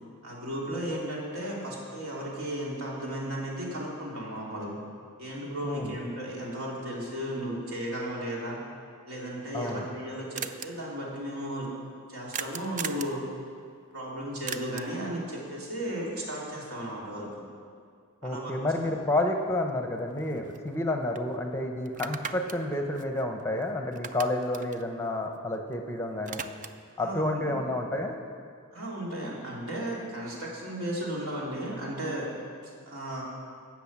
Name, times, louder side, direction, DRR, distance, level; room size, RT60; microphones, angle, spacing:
voice 1, 0.2-4.8 5.2-8.6 9.1-11.7 12.1-13.2 13.9-17.5 18.2-18.5 18.8-18.9 27.0-27.6 28.7-32.3 32.6-33.2, right 1 dB, 70° right, -4 dB, 3.2 m, -35 dB
voice 2, 5.6-5.9 9.5-9.9 18.2-26.4 27.0-28.2, left 1 dB, 10° left, 3 dB, 0.8 m, -30 dB
sound 1, 10.0-10.1 10.4-10.7 12.3-13.2 14.5-15.0 19.2-19.3 19.7-20.8 21.2-21.3 21.9-23.6 23.9-25.8 26.0-26.9, right 6 dB, 35° right, 0.5 m, -39 dB
16.5 x 6.4 x 7.4 m, 2.2 s
head